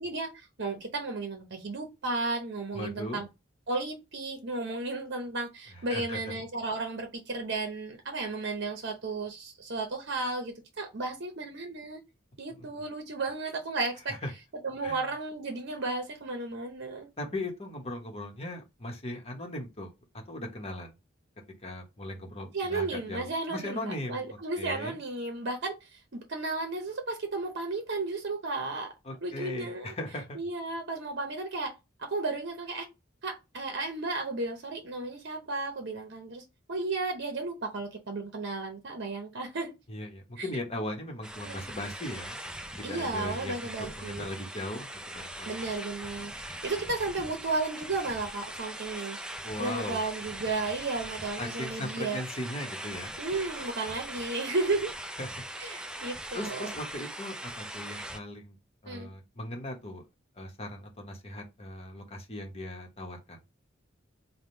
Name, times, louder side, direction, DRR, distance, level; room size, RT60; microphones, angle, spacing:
voice 1, 0.0-3.3 3.7-12.0 12.4-14.2 14.6-17.1 22.5-28.9 29.2-29.9 30.3-31.7 32.0-32.9 33.2-39.7 40.4-40.5 41.4-41.7 42.8-44.3 45.5-49.2 49.6-52.2 53.2-54.9 55.6-56.7 58.9-59.1, right 3 dB, 55° right, 0.8 m, -34 dB
voice 2, 2.7-3.2 5.7-6.3 12.6-12.7 14.2-14.3 14.8-15.0 17.2-19.9 20.3-20.9 21.6-25.0 29.0-30.4 39.9-42.4 42.8-45.6 49.4-50.0 51.4-53.1 55.2-55.4 56.3-58.6 58.8-60.0 60.4-63.4, left 1 dB, 30° left, 1.1 m, -38 dB
sound 1, 41.2-58.2, right 1 dB, 5° right, 0.4 m, -41 dB
3.6 x 2.2 x 4.4 m
head